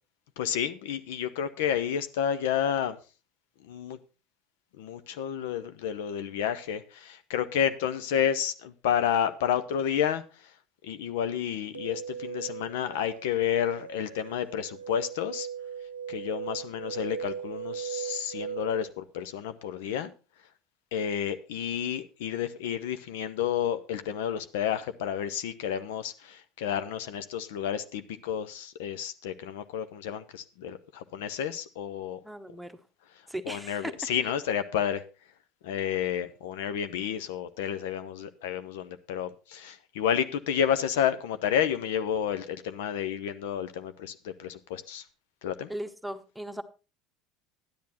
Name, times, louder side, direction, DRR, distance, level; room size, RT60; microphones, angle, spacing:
voice 1, 0.4-3.0 3.7-4.0 4.8-10.2 10.8-15.5 16.1-20.1 20.9-32.2 33.4-35.0 35.6-45.0 45.4-45.7, left 9 dB, 65° left, 0.7 m, -30 dB
sound 1, 11.7-18.9, right 8 dB, 80° right, 0.7 m, -39 dB
voice 2, 32.2-32.7 33.3-33.9 45.7-46.6, right 1 dB, 5° right, 1.2 m, -37 dB
12.0 x 10.5 x 4.2 m
figure-of-eight pair, 70°, 0 cm